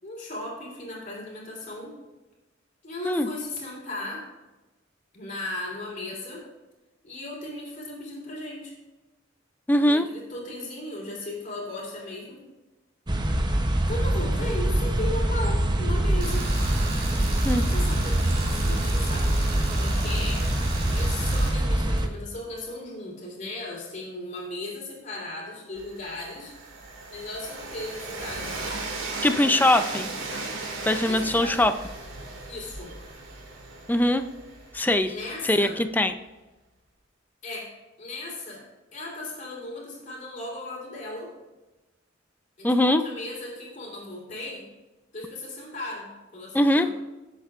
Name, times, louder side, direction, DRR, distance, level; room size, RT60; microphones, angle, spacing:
voice 1, 0.0-1.9 2.8-4.2 5.1-6.4 7.0-8.7 9.9-12.4 13.9-16.4 17.5-19.4 19.7-20.4 20.9-26.5 27.1-28.7 31.0-31.7 32.5-32.9 35.1-35.7 37.4-37.7 38.0-38.6 38.9-41.3 42.6-44.6 45.1-46.9, left 2 dB, 40° left, -3 dB, 3.4 m, -36 dB
voice 2, 9.7-10.1 17.4-17.7 29.2-30.1 30.8-31.7 33.9-34.3 34.7-35.1 35.4-36.1 42.6-43.0 46.5-46.9, left 1 dB, 10° left, 9 dB, 0.4 m, -21 dB
sound 1, 13.1-22.1, right 1 dB, 20° right, 0.7 m, -24 dB
Tools, 16.2-21.5, right 2 dB, 45° right, 2.7 m, -36 dB
Train, 25.8-35.6, right 3 dB, 85° right, 2.1 m, -37 dB
19.0 x 8.1 x 2.5 m, 1.1 s
head